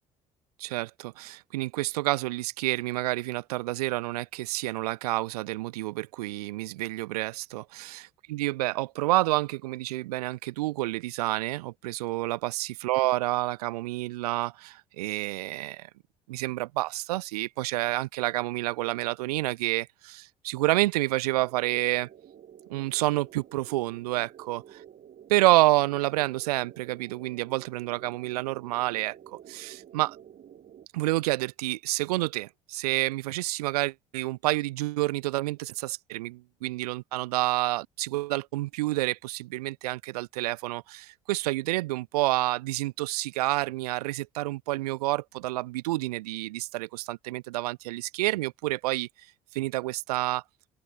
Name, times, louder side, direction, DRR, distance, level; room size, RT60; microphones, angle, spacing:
voice 1, 0.6-15.9 16.3-22.1 22.7-24.6 25.3-30.2 30.9-49.1 49.5-50.4, right 18 dB, 85° right, 0.6 m, -29 dB
sound 1, 21.2-30.9, right 9 dB, 50° right, 7.9 m, -51 dB
open air
hypercardioid pair, 55°, 19 cm